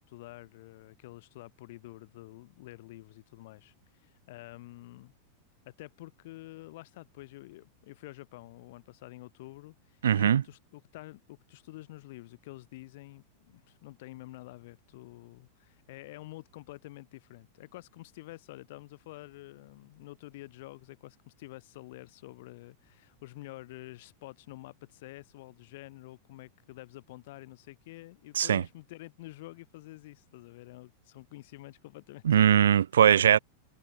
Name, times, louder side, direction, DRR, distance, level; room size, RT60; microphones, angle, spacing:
voice 1, 0.0-5.1 5.7-32.7, left 19 dB, 50° left, 7.3 m, -48 dB
voice 2, 10.0-10.4 28.4-28.6 32.2-33.4, right 9 dB, 65° right, 0.6 m, -21 dB
figure-of-eight pair, 90°, 0 cm